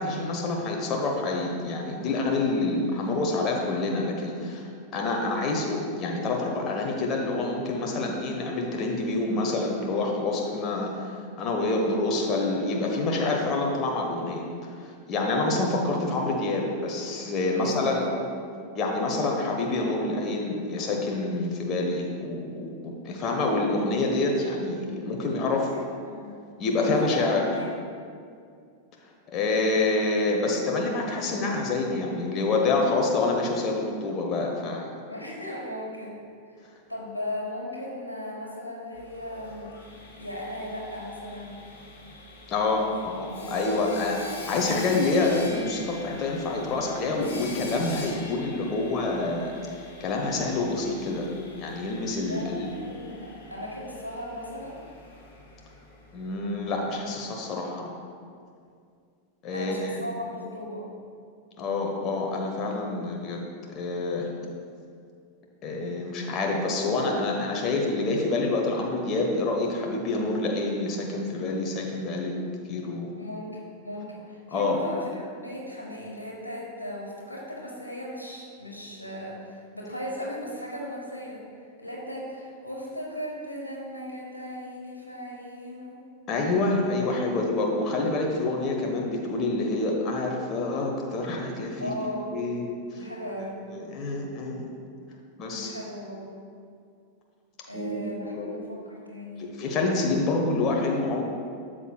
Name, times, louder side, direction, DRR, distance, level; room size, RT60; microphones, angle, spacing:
voice 1, 0.0-11.1 11.4-18.1 18.7-25.7 26.6-27.5 29.3-35.0 42.5-49.5 50.0-51.3 51.6-52.7 56.1-58.0 59.4-60.0 61.6-63.4 63.7-64.3 65.6-72.4 72.7-73.1 74.5-74.8 86.3-91.9 92.3-92.6 93.7-94.7 95.4-95.8 97.7-98.5 99.4-101.2, left 2 dB, 35° left, 0 dB, 1.1 m, -27 dB
voice 2, 17.5-18.3 25.5-26.4 26.8-27.7 35.1-36.2 36.5-41.6 42.8-43.0 43.3-43.7 52.3-54.8 59.5-60.8 73.1-81.4 81.8-86.0 91.8-92.4 92.9-93.6 95.5-96.3 97.6-99.5, left 1 dB, 85° left, -2 dB, 1.4 m, -37 dB
Sawing, 38.9-56.8, left 3 dB, 65° left, 2.1 m, -45 dB
12.5 x 7.5 x 2.3 m, 2.3 s
figure-of-eight pair, 90°, 0 cm